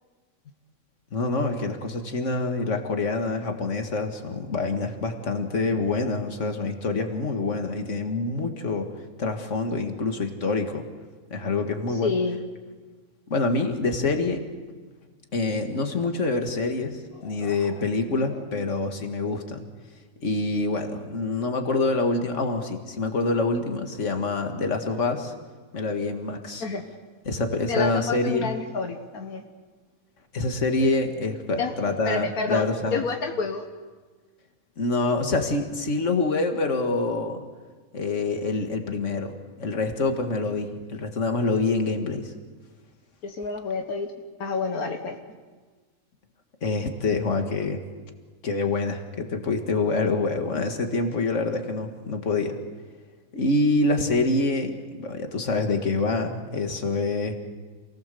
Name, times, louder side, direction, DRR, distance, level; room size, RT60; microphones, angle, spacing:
voice 1, 1.1-8.9 9.2-10.8 11.3-12.1 13.3-14.4 15.3-19.7 20.2-25.3 25.7-26.6 27.3-28.5 30.3-33.0 34.8-37.4 37.9-39.3 39.6-42.3 46.6-47.8 48.4-52.6 53.3-57.3, left 3 dB, 55° left, 5 dB, 2.2 m, -26 dB
voice 2, 12.0-12.4 17.2-17.8 26.6-26.8 27.7-29.4 31.6-31.7 32.1-33.6 43.2-44.1 44.4-45.2, left 4 dB, 80° left, 4 dB, 1.8 m, -29 dB
28.0 x 19.0 x 7.0 m, 1.4 s
omnidirectional pair, 1.5 m